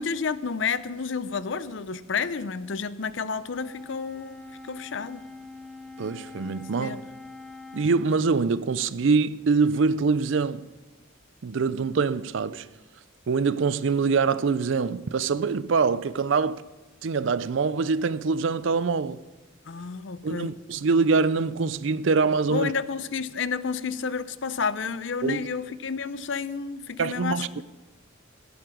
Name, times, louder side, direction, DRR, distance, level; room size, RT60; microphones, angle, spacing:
voice 1, 0.0-4.4 4.7-5.2 6.8-7.0 19.7-20.6 22.5-27.6, left 5 dB, 60° left, 0.6 m, -30 dB
Wind instrument woodwind instrument, 3.5-8.0, left 3 dB, 5° left, 0.8 m, -43 dB
voice 2, 6.0-7.0 7.7-10.7 11.4-12.7 13.3-16.6 17.0-19.2 20.2-22.7 25.2-25.4 27.0-27.6, right 4 dB, 65° right, 0.5 m, -24 dB
16.0 x 11.5 x 5.0 m
head